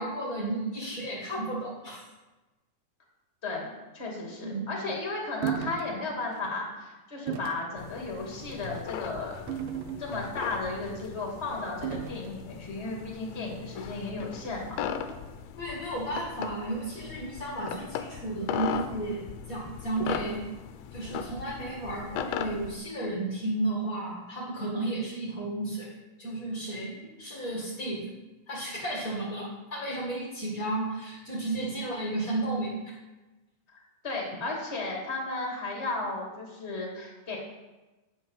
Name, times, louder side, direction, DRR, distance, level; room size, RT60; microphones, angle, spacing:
voice 1, 0.0-2.0 4.4-4.7 15.6-20.5 20.9-25.9 26.2-28.1 28.5-32.8, right 2 dB, 40° left, -5 dB, 1.2 m, -33 dB
voice 2, 3.4-9.4 10.0-14.7 34.0-37.4, left 3 dB, 25° left, -1 dB, 1.7 m, -34 dB
sound 1, 5.4-5.9 6.3-6.5 7.3-7.6 8.4-8.7 9.5-10.4 11.8-12.3, right 9 dB, 80° right, 2.0 m, -34 dB
sound 2, 7.8-22.7, left 8 dB, 80° left, 2.1 m, -38 dB
10.0 x 8.5 x 5.7 m, 1.1 s
omnidirectional pair, 4.8 m